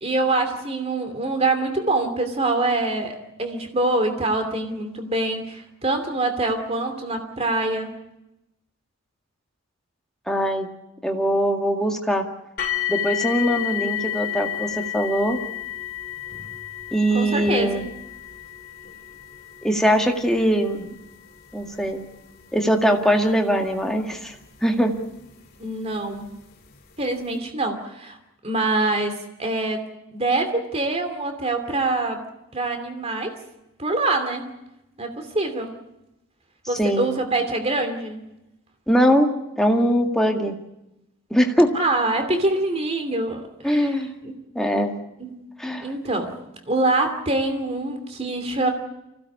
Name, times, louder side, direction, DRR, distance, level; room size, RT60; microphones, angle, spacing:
voice 1, 0.0-7.9 17.1-17.8 25.6-26.3 27.0-28.2 28.4-29.8 30.1-32.2 32.5-33.4 33.8-34.5 35.0-35.7 36.7-38.2 41.7-44.3 45.2-45.3 45.8-46.3 46.7-48.7, right 2 dB, 30° right, 6 dB, 2.8 m, -25 dB
voice 2, 10.3-10.7 11.0-12.3 12.9-15.4 16.9-17.8 19.6-20.9 21.5-22.0 22.5-24.4 24.6-24.9 36.8-37.1 38.9-40.6 41.3-41.7 43.6-44.1 44.6-44.9 45.6-45.9, equal, ahead, 2 dB, 2.0 m, -21 dB
sound 1, 12.6-25.5 26.3-26.4 27.0-27.1, left 12 dB, 45° left, 2.7 m, -32 dB
25.5 x 17.0 x 8.5 m, 0.90 s
head